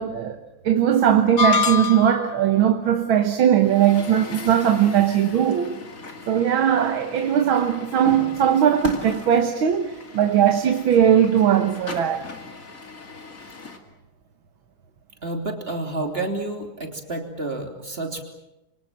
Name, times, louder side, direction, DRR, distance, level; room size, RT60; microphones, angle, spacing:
voice 1, 0.0-5.8 6.3-12.2, right 9 dB, 80° right, 2.0 m, -19 dB
sound 1, 1.4-2.4, left 5 dB, 75° left, 2.4 m, -22 dB
Truck, 3.6-13.8, left 4 dB, 40° left, 2.7 m, -38 dB
voice 2, 15.2-18.2, right 2 dB, 30° right, 3.4 m, -29 dB
28.0 x 25.0 x 7.5 m
omnidirectional pair, 2.2 m